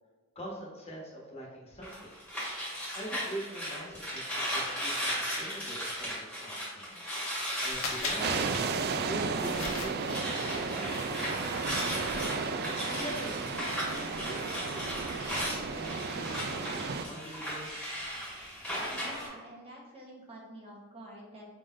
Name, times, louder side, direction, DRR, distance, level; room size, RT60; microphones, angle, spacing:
voice 1, 0.3-2.1 2.9-6.8 7.6-8.4 9.0-11.8 12.8-15.3 15.6-16.7 17.1-17.7, equal, 30° left, -4 dB, 1.2 m, -43 dB
sound 1, 1.8-9.8 10.0-19.3, equal, 5° left, 1.4 m, -36 dB
sound 2, 7.7-8.2 9.3-10.1 11.6-11.8 12.2-12.4, left 3 dB, 80° left, 1.0 m, -37 dB
sound 3, 8.2-17.1, right 4 dB, 50° right, 0.3 m, -34 dB
voice 2, 18.9-21.5, right 1 dB, 30° right, -4 dB, 1.0 m, -48 dB
5.0 x 3.8 x 2.5 m, 1.4 s
head